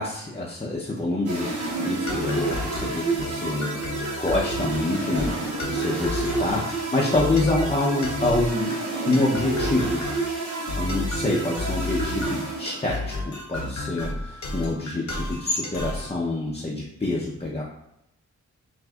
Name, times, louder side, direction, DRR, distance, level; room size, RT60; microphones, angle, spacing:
voice 1, 0.0-8.7 9.0-10.0 10.8-17.6, left 2 dB, 20° left, -5 dB, 0.6 m, -27 dB
sound 1, 1.2-13.1, right 3 dB, 90° right, 0.8 m, -30 dB
sound 2, 2.1-16.1, left 2 dB, 70° left, 0.8 m, -33 dB
6.1 x 2.6 x 2.4 m, 0.86 s
wide cardioid pair, 95°, 30 cm